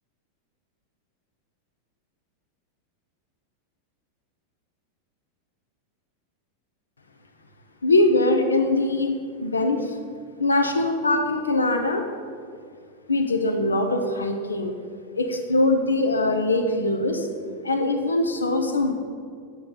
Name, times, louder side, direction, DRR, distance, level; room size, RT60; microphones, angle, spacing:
voice 1, 7.8-9.1 9.4-10.0 10.4-12.1 13.1-14.8 15.2-17.3 17.6-18.9, left 2 dB, 75° left, 6 dB, 0.8 m, -22 dB
8.9 x 6.7 x 5.5 m, 2.2 s
figure-of-eight pair, 90°, 0 cm